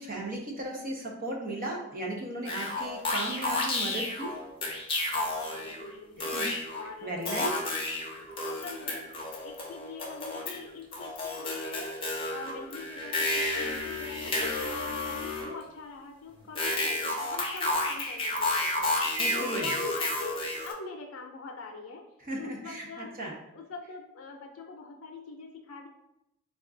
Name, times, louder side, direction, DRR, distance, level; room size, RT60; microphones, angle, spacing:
voice 1, 0.0-4.3 6.2-6.5 7.0-7.6 19.2-19.7 22.2-23.3, right 1 dB, 45° right, -1 dB, 0.8 m, -36 dB
sound 1, 2.5-5.9 6.2-6.8 7.3-10.6 10.9-15.6 16.6-20.7, left 2 dB, 25° left, 0.6 m, -31 dB
voice 2, 5.0-6.4 6.7-9.1 9.4-11.9 12.3-18.9 19.3-20.4 20.6-22.0 22.4-23.1 23.5-25.9, left 4 dB, 90° left, 3 dB, 0.5 m, -44 dB
3.7 x 2.3 x 3.8 m, 0.83 s
head